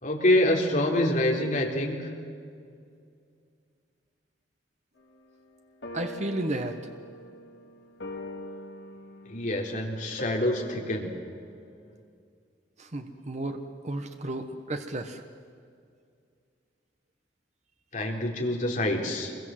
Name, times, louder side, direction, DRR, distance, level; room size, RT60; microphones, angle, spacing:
voice 1, 0.0-2.1 9.3-11.1 17.9-19.3, left 1 dB, 45° left, 0 dB, 3.8 m, -26 dB
sound 1, 5.0-5.1 5.8-12.0, left 1 dB, 85° left, 4.0 m, -42 dB
voice 2, 5.9-6.8 12.8-13.6 13.8-15.2, right 1 dB, 40° right, 6 dB, 1.3 m, -33 dB
25.5 x 22.5 x 7.8 m, 2.2 s
head